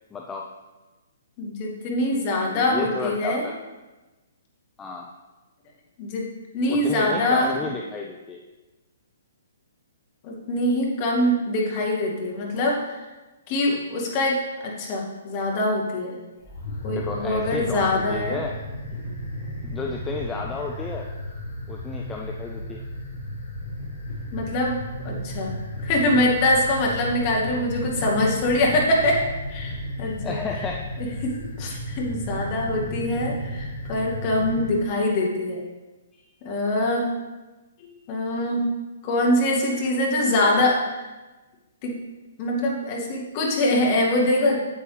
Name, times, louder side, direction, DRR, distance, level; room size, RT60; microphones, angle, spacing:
voice 1, 0.1-0.5 2.5-3.5 4.8-5.1 6.7-8.4 16.9-18.6 19.6-21.1 21.7-22.9 30.2-30.9 36.1-36.2 38.4-38.5, left 4 dB, 15° left, 0 dB, 0.6 m, -32 dB
voice 2, 1.4-3.5 6.0-7.5 10.2-13.0 13.5-16.2 16.8-18.4 24.3-25.5 25.8-30.4 31.0-35.6 36.4-37.1 37.8-38.7 39.0-40.8 41.8-42.0 42.4-44.6, left 1 dB, 35° left, -2 dB, 2.0 m, -24 dB
sound 1, 16.4-34.8, left 1 dB, 55° left, 3.2 m, -33 dB
8.6 x 8.2 x 3.3 m, 1.2 s
figure-of-eight pair, 120°, 0 cm